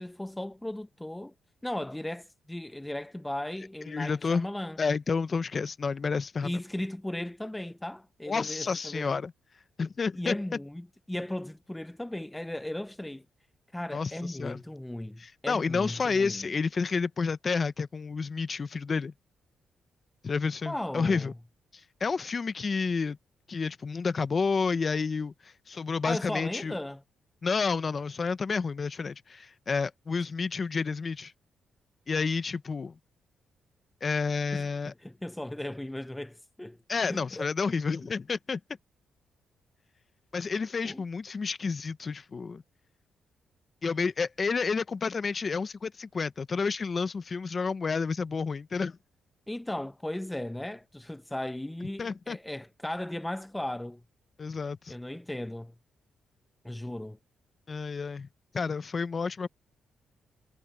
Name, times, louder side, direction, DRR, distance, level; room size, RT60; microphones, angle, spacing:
voice 1, 0.0-1.3 1.6-4.8 6.4-9.1 10.2-13.2 13.7-16.5 20.7-21.3 26.0-27.0 34.5-36.8 37.1-37.5 40.8-41.0 49.5-54.0 54.9-55.7 56.6-57.2, left 1 dB, 10° left, 0.8 m, -36 dB
voice 2, 3.9-4.5 4.8-6.5 8.3-9.3 9.8-10.4 13.9-14.6 15.2-19.1 20.2-21.3 22.0-23.2 23.5-26.8 27.4-31.3 32.1-32.9 34.0-34.9 36.9-38.6 40.3-42.6 43.8-49.0 52.0-52.4 54.4-54.9 57.7-58.3 58.5-59.5, left 5 dB, 40° left, 0.9 m, -30 dB
cardioid pair, 85°, 0 cm